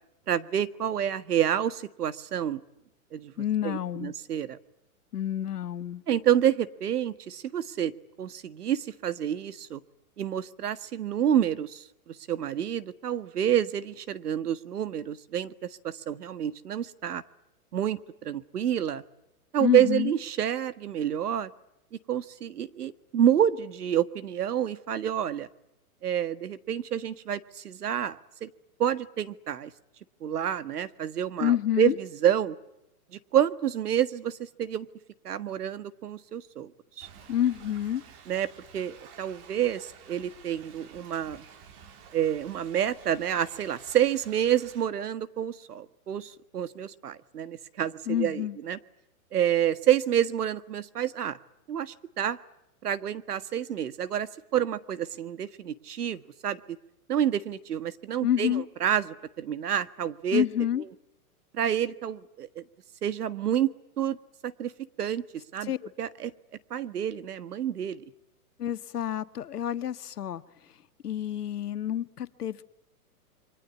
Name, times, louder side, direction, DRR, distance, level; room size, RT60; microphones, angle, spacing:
voice 1, 0.3-2.6 3.1-3.3 3.6-4.6 6.1-7.9 8.2-9.8 10.2-17.2 17.7-19.0 19.5-21.5 22.1-25.5 26.0-28.5 28.8-29.7 30.2-32.6 33.3-34.9 35.2-36.7 37.0-37.1 38.3-38.5 38.7-41.4 42.1-48.8 49.3-51.4 51.7-52.4 52.8-56.6 57.1-60.4 61.5-62.6 63.0-63.7 64.0-64.2 64.4-64.7 65.0-65.7 66.0-66.3 66.7-68.0, right 10 dB, 85° right, 13 dB, 1.7 m, -28 dB
voice 2, 3.4-4.1 5.1-6.0 19.6-20.1 31.4-32.0 37.3-38.0 48.1-48.6 58.2-58.6 60.3-60.8 65.6-65.9 68.6-70.4 71.0-72.6, left 10 dB, 90° left, 12 dB, 1.6 m, -28 dB
Thunder / Rain, 37.0-44.9, right 7 dB, 35° right, 2.9 m, -51 dB
28.0 x 24.0 x 8.4 m, 0.87 s
hypercardioid pair, 145°, 45 cm